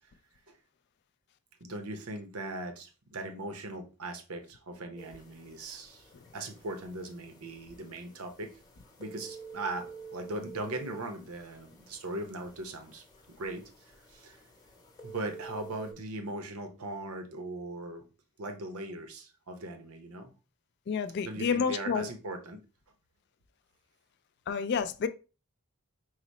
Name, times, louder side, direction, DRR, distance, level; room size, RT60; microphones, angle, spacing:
voice 1, 1.6-6.1 6.3-8.5 9.0-14.4 15.0-18.0 18.4-20.3 21.2-22.6, right 2 dB, 80° right, 0.8 m, -39 dB
sound 1, 5.0-15.9, right 4 dB, 20° left, 0.8 m, -49 dB
voice 2, 20.9-22.1 24.5-25.1, left 6 dB, 50° left, 0.3 m, -29 dB
4.8 x 2.0 x 4.1 m
head